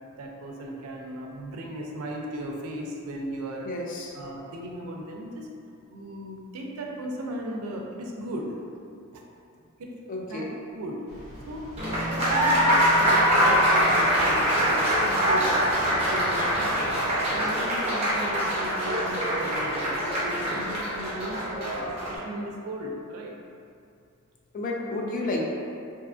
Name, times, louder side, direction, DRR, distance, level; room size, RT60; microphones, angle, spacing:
voice 1, 0.1-3.7 4.1-5.5 5.9-8.5 9.1-9.2 9.8-9.9 10.2-10.5 10.7-11.7 12.0-17.0 17.3-23.3, right 1 dB, 85° right, 0 dB, 0.4 m, -37 dB
voice 2, 3.6-4.1 10.1-10.5 24.5-25.4, left 2 dB, 40° left, -1 dB, 0.3 m, -31 dB
sound 1, 11.1-17.4, equal, 70° left, 0.7 m, -44 dB
Applause, 11.8-22.2, equal, 30° right, 0.6 m, -24 dB
2.7 x 2.4 x 2.3 m, 2.4 s
head